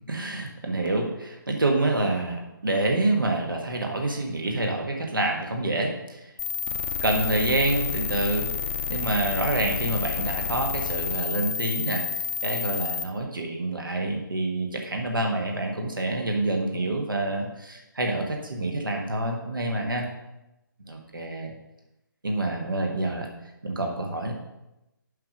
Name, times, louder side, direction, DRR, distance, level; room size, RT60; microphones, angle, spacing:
voice 1, 0.1-6.3 7.0-8.5 8.9-12.0 12.4-20.1 20.9-21.5 22.2-23.3 23.6-24.3, right 2 dB, 70° right, 2 dB, 1.6 m, -27 dB
sound 1, 6.4-13.0, left 6 dB, 35° left, 0.7 m, -30 dB
7.6 x 5.2 x 6.1 m, 0.93 s
figure-of-eight pair, 145°, 11 cm